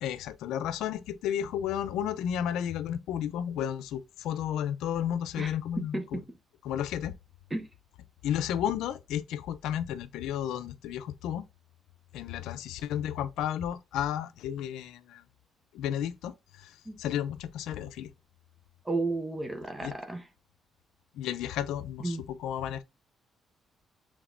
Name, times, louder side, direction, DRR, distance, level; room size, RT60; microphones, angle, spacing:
voice 1, 0.0-6.2 6.6-7.1 8.2-11.4 12.1-15.2 15.7-16.3 16.6-16.7 17.0-18.1 19.8-19.9 21.2-22.8, left 10 dB, 90° left, 0.4 m, -32 dB
voice 2, 5.4-6.2 7.5-7.7 16.9-17.0 18.8-20.3 22.0-22.2, right 2 dB, 20° right, 0.8 m, -33 dB
5.1 x 3.5 x 2.5 m
cardioid pair, 90°, 0 cm